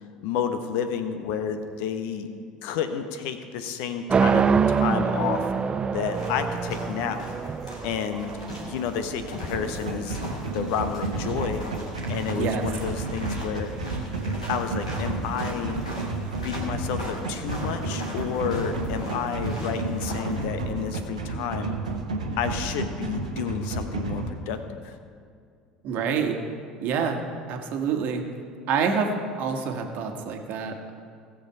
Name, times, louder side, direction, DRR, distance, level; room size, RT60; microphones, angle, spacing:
voice 1, 0.2-2.3 2.6-5.5 5.9-7.2 7.8-8.3 8.6-10.2 10.5-11.6 12.1-13.7 14.5-15.9 16.3-21.7 22.4-24.9, left 7 dB, 60° left, 8 dB, 0.9 m, -30 dB
sound 1, 4.1-10.2, right 6 dB, 25° right, 0.4 m, -25 dB
sound 2, 6.0-20.4, equal, 85° left, 2.0 m, -40 dB
sound 3, 9.5-24.3, right 2 dB, 80° right, 1.1 m, -31 dB
voice 2, 12.3-12.6 25.8-26.4 26.8-27.2 27.5-28.2 28.7-30.9, right 6 dB, 50° right, 3 dB, 1.4 m, -27 dB
17.0 x 7.2 x 4.8 m, 2.2 s
figure-of-eight pair, 65°, 4 cm